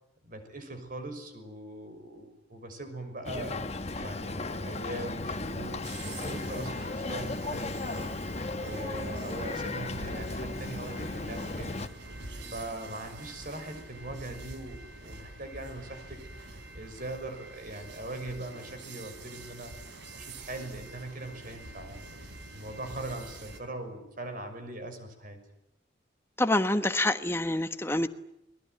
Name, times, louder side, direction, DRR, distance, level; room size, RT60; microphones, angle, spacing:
voice 1, 0.2-8.1 8.6-11.9 12.5-19.7 20.1-22.1 22.5-25.4, right 1 dB, 45° right, 7 dB, 6.1 m, -41 dB
Boat Water vehicle, 3.2-11.9, left 2 dB, 35° left, 1.2 m, -35 dB
sound 1, 5.8-23.6, right 2 dB, 65° right, 4.1 m, -46 dB
voice 2, 26.4-28.1, left 1 dB, 15° left, 9 dB, 1.3 m, -26 dB
30.0 x 20.5 x 9.3 m, 0.80 s
head